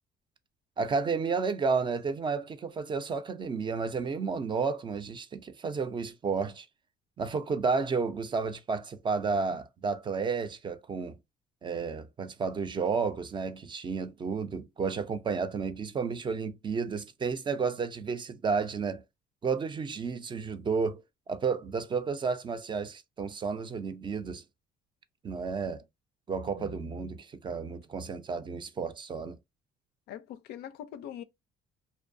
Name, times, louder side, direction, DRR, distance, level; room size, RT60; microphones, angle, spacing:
voice 1, 0.8-6.7 7.2-11.2 11.6-19.0 19.4-24.4 25.2-25.8 26.3-29.4, right 5 dB, 30° right, 0.4 m, -32 dB
voice 2, 26.6-27.1 30.1-31.2, left 10 dB, 75° left, 0.4 m, -43 dB
2.5 x 2.1 x 2.5 m
cardioid pair, 110°, 17 cm